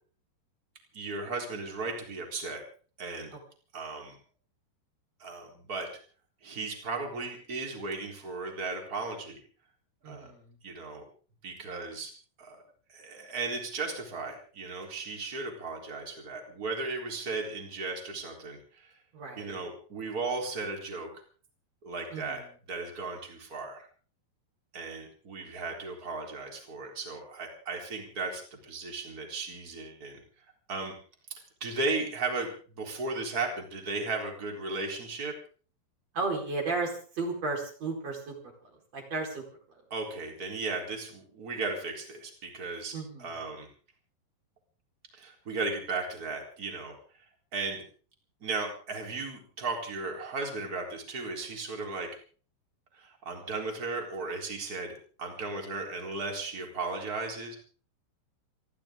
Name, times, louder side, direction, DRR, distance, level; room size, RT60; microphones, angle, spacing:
voice 1, 0.9-2.6 3.0-3.4 3.7-4.2 5.2-5.9 6.4-9.4 10.0-10.3 10.6-11.0 11.4-12.1 12.4-12.6 12.9-18.9 19.4-21.1 21.8-22.4 22.7-23.9 24.7-30.2 30.7-30.9 31.6-35.3 39.9-42.9 43.2-43.7 45.2-47.0 47.5-47.8 48.4-52.1 52.9-57.5, right 3 dB, 20° right, 2 dB, 3.8 m, -36 dB
voice 2, 10.0-10.6 19.1-19.6 22.1-22.5 36.1-38.4 38.6-39.4 42.9-43.3, right 3 dB, 40° right, 1 dB, 5.4 m, -34 dB
29.5 x 12.0 x 3.8 m, 0.41 s
omnidirectional pair, 4.9 m